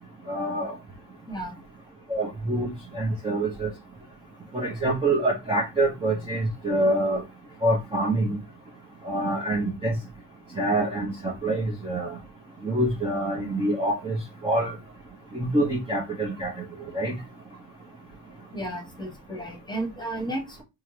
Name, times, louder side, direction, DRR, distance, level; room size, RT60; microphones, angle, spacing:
voice 1, 0.3-0.7 2.1-3.7 4.5-7.2 7.6-8.4 9.0-9.9 10.6-12.2 12.6-14.2 14.4-14.7 15.3-16.5 16.9-17.1, right 1 dB, 10° right, 0.8 m, -26 dB
voice 2, 1.3-1.6 18.5-20.6, right 1 dB, 10° left, 1.3 m, -33 dB
3.6 x 2.2 x 3.2 m
supercardioid pair, 75°, 50 cm